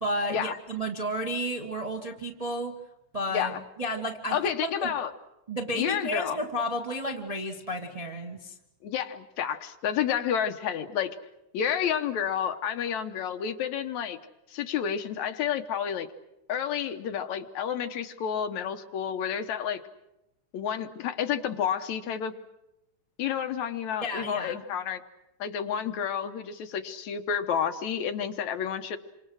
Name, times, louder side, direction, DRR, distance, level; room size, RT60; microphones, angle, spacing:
voice 1, 0.0-2.7 3.1-4.9 5.5-8.5 24.0-24.6, equal, 20° right, 1 dB, 0.9 m, -32 dB
voice 2, 3.3-3.6 4.3-5.1 5.8-6.4 8.8-11.2 11.5-14.2 14.5-16.1 16.5-19.8 20.5-22.3 23.2-25.0 25.4-29.0, left 8 dB, 70° left, 7 dB, 2.3 m, -30 dB
28.0 x 26.0 x 6.4 m, 0.89 s
omnidirectional pair, 3.6 m